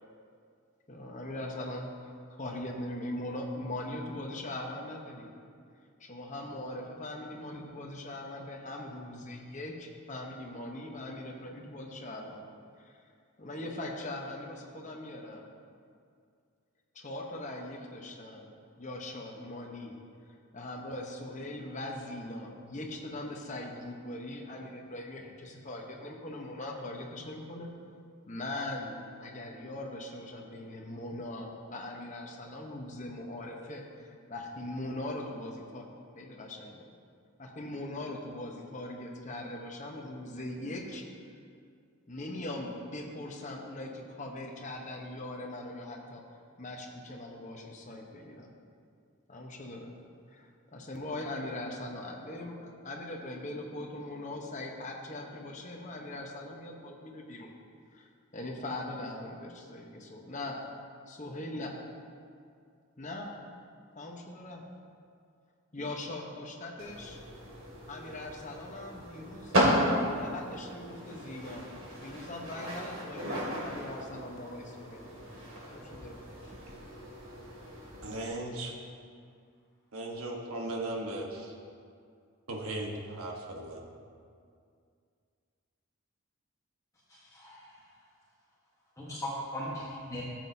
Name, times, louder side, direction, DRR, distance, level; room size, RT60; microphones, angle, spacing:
voice 1, 0.9-5.3 6.0-12.4 12.8-13.0 13.4-15.5 16.9-18.5 18.8-19.9 20.5-27.7 28.3-35.9 36.1-36.9 37.4-41.0 42.1-46.2 46.6-48.5 49.3-49.9 50.3-57.5 57.9-60.6 61.1-61.7 63.0-63.4 64.0-64.6 65.7-67.2 67.9-69.5 70.2-71.7 72.0-75.1 75.6-76.2, left 1 dB, 35° left, 1 dB, 1.0 m, -40 dB
sound 1, 66.8-78.3, equal, 65° right, 2.3 m, -34 dB
voice 2, 78.0-78.7 79.9-81.5 82.5-83.8, right 1 dB, 85° right, 0 dB, 1.2 m, -37 dB
voice 3, 87.1-87.9 89.0-90.2, equal, 15° left, -7 dB, 1.2 m, -39 dB
13.5 x 7.6 x 2.8 m, 2.3 s
head